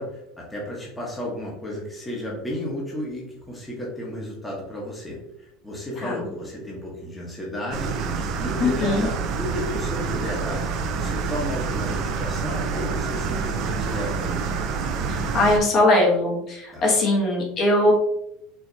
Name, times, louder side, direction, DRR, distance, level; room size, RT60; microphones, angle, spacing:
voice 1, 0.0-8.0 8.4-14.4 16.7-16.8, left 1 dB, 10° left, -4 dB, 1.0 m, -33 dB
sound 1, 7.7-15.6, right 5 dB, 50° right, 0.5 m, -27 dB
voice 2, 8.6-9.1 15.1-17.9, left 2 dB, 40° left, -2 dB, 1.1 m, -20 dB
4.7 x 2.8 x 2.7 m, 0.80 s
supercardioid pair, 140°, 0 cm